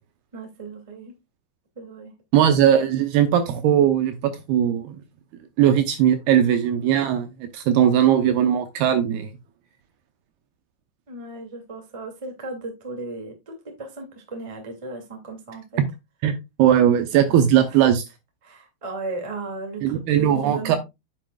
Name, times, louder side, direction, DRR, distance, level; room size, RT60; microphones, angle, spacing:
voice 1, 0.3-1.1 1.7-2.1 11.1-15.8 17.3-17.9 18.4-20.8, right 3 dB, 30° right, 2 dB, 0.5 m, -36 dB
voice 2, 2.3-5.0 5.6-9.3 16.2-16.3 16.6-18.0 19.8-20.8, right 10 dB, 80° right, 8 dB, 2.4 m, -19 dB
9.7 x 7.6 x 2.3 m, 0.22 s
omnidirectional pair, 5.2 m